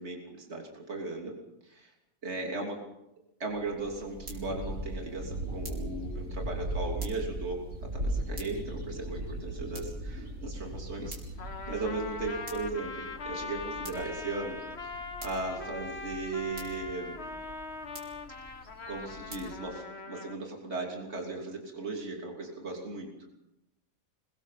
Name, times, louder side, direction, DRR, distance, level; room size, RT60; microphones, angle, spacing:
voice 1, 0.0-1.4 1.6-1.9 2.2-2.8 3.4-11.2 11.7-17.2 18.9-23.1, right 3 dB, 50° right, 0 dB, 3.5 m, -37 dB
sound 1, 3.5-19.6, right 1 dB, 75° right, 6.5 m, -39 dB
Trumpet, 11.4-20.4, left 3 dB, 50° left, 1.7 m, -41 dB
27.5 x 22.0 x 5.9 m, 0.89 s
omnidirectional pair, 1.5 m